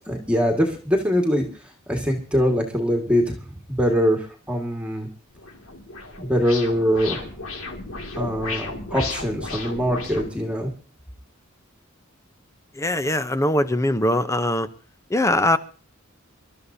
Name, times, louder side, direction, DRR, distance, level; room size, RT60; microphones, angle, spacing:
voice 1, 0.1-1.5 1.9-5.1 6.2-7.3 8.2-10.7, equal, 5° right, 2 dB, 1.8 m, -23 dB
sound 1, 5.3-10.3, left 3 dB, 75° left, 2.3 m, -34 dB
voice 2, 12.8-14.7 15.1-15.6, left 1 dB, 15° left, 11 dB, 0.7 m, -21 dB
26.5 x 12.5 x 2.7 m, 0.36 s
head